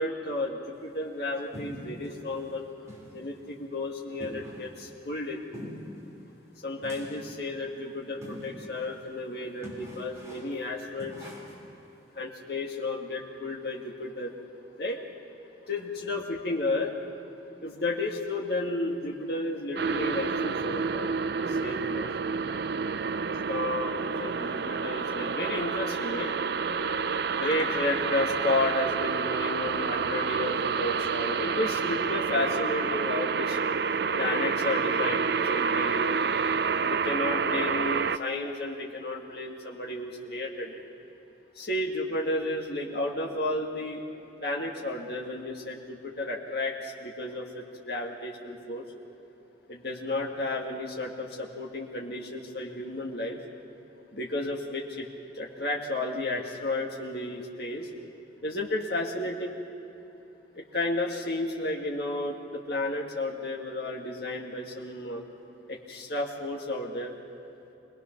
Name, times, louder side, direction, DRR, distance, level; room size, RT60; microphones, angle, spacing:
voice 1, 0.0-2.6 3.1-5.4 6.6-11.3 12.1-14.3 14.8-15.0 15.7-16.9 17.6-22.1 23.3-26.4 27.3-33.6 34.2-36.2 36.8-40.8 41.6-44.0 44.4-48.8 49.7-53.4 54.1-55.1 55.3-57.9 58.4-59.6 60.6-65.2 65.7-67.1, left 2 dB, 60° left, -1 dB, 1.9 m, -32 dB
sound 1, 1.5-2.1 2.5-2.6 2.9-3.1 3.5-3.6 4.2-4.8 5.5-6.0 6.8-7.4 8.2-8.6 9.0-9.1 9.6-10.6 11.0-11.7, equal, 15° right, 4.0 m, -43 dB
sound 2, 19.8-38.2, right 5 dB, 60° right, 0.4 m, -29 dB
26.0 x 19.5 x 5.9 m, 2.9 s
head